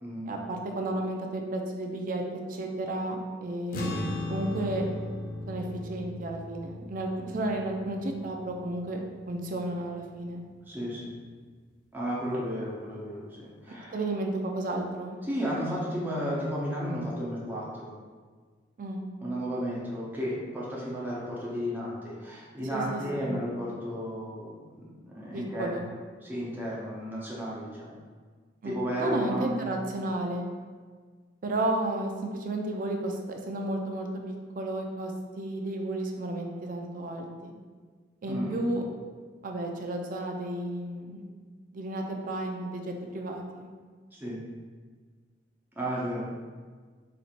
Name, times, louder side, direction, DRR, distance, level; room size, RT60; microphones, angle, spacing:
voice 1, 0.3-2.2 2.5-4.8 5.5-10.4 13.7-15.2 18.8-19.0 22.7-23.4 25.3-25.8 28.6-30.5 31.4-35.1 35.4-37.5 38.2-38.8 39.4-41.2 41.7-43.7, right 1 dB, 50° right, 2 dB, 0.4 m, -32 dB
sound 1, 3.7-10.4, left 1 dB, 50° left, 0.5 m, -38 dB
voice 2, 10.7-11.1 11.9-14.0 15.2-17.9 19.2-24.5 25.0-25.7 26.2-28.0 28.6-29.7 38.3-38.6 44.2-44.4 45.8-46.3, equal, 10° right, -7 dB, 0.8 m, -33 dB
4.2 x 2.7 x 2.5 m, 1.5 s
head